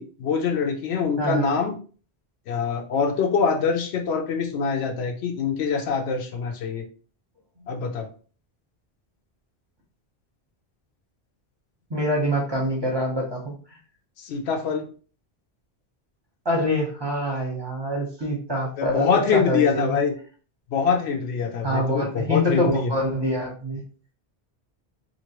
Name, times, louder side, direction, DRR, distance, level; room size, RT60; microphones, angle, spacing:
voice 1, 0.0-1.7 2.5-6.8 7.7-8.1 14.2-14.9 18.8-20.1 20.7-22.9, left 5 dB, 85° left, 5 dB, 0.9 m, -24 dB
voice 2, 1.2-1.5 11.9-13.5 16.4-20.0 21.6-23.8, equal, 25° right, -2 dB, 0.8 m, -25 dB
2.8 x 2.5 x 2.9 m, 0.40 s
omnidirectional pair, 1.1 m